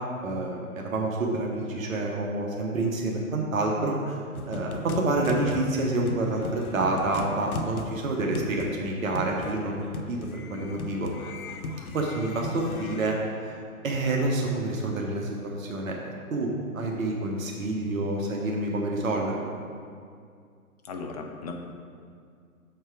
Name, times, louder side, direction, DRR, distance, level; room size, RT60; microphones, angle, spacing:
voice 1, 0.2-4.2 4.5-10.2 10.5-11.1 11.9-13.2 13.4-13.6 13.8-16.0 16.3-19.5, right 2 dB, 60° right, -1 dB, 1.1 m, -28 dB
sound 1, 4.3-13.1, left 3 dB, 70° left, 0.7 m, -37 dB
voice 2, 20.8-21.5, left 4 dB, 30° left, 3 dB, 0.4 m, -36 dB
6.5 x 4.5 x 4.7 m, 2.2 s
figure-of-eight pair, 125°, 45 cm